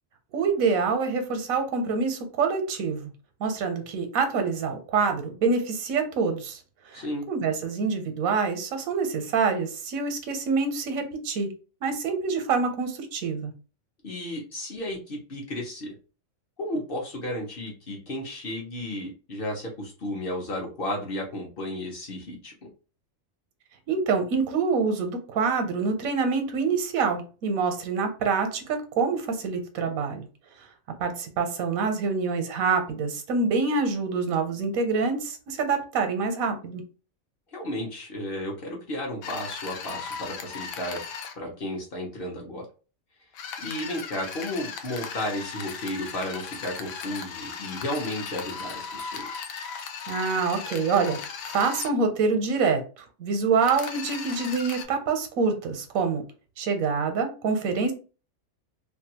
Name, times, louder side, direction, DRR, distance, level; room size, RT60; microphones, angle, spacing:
voice 1, 0.3-3.1 3.4-6.6 6.9-11.5 11.8-13.5 23.9-30.3 31.0-36.8 50.1-51.2 51.4-56.2 56.6-57.9, right 4 dB, 85° right, 7 dB, 1.1 m, -26 dB
voice 2, 6.9-7.3 14.0-15.9 16.6-22.5 37.5-41.0 41.4-42.7 43.6-49.5, left 1 dB, 50° left, 0 dB, 0.8 m, -33 dB
sound 1, 39.2-41.3 43.3-51.9 53.6-54.8, left 6 dB, 85° left, 1.0 m, -37 dB
2.6 x 2.2 x 2.8 m, 0.35 s
omnidirectional pair, 1.4 m